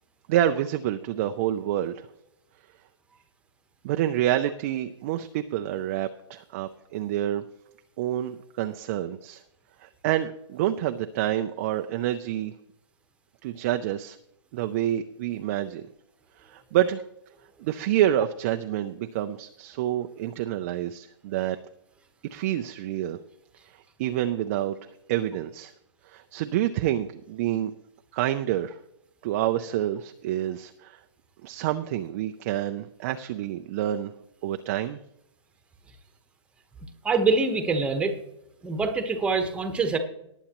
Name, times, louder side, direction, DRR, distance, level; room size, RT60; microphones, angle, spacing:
voice 1, 0.3-2.1 3.8-7.4 8.0-9.4 9.8-12.5 13.4-14.2 14.5-15.8 16.4-17.0 17.6-21.6 22.3-23.2 23.7-24.8 25.1-25.7 26.1-27.7 28.1-28.8 29.2-31.0 31.4-34.1 34.4-35.0, right 12 dB, 30° right, 7 dB, 0.4 m, -28 dB
voice 2, 37.0-38.1 38.6-40.0, right 4 dB, 5° right, 6 dB, 1.0 m, -24 dB
19.0 x 8.9 x 3.0 m, 0.82 s
hypercardioid pair, 150°, 16 cm